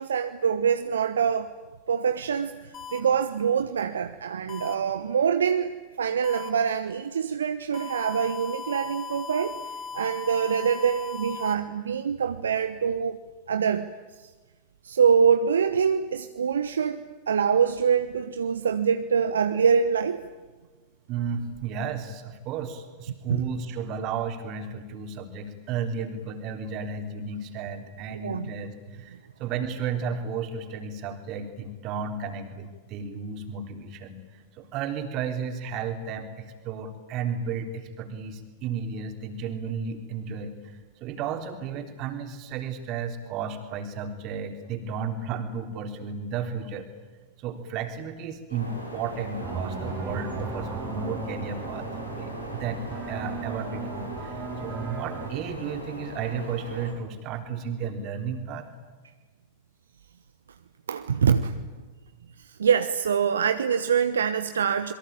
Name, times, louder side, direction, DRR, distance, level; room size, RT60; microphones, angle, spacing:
voice 1, 0.0-1.5 1.9-13.2 13.5-13.9 14.8-20.2 23.3-23.4 28.2-28.5 60.9-61.7 62.4-64.9, right 7 dB, 70° right, 9 dB, 1.0 m, -25 dB
sound 1, 2.7-3.0 4.5-4.7 6.2-6.5 7.7-11.5, left 5 dB, 30° left, 3.6 m, -38 dB
voice 2, 21.1-34.2 34.5-46.9 47.4-58.7, right 6 dB, 40° right, 5 dB, 3.8 m, -33 dB
sound 2, 48.5-56.9, left 1 dB, 90° left, 5.1 m, -39 dB
sound 3, 49.4-55.3, right 5 dB, 25° right, 3.0 m, -36 dB
28.0 x 22.5 x 8.9 m, 1.3 s
figure-of-eight pair, 90°, 0 cm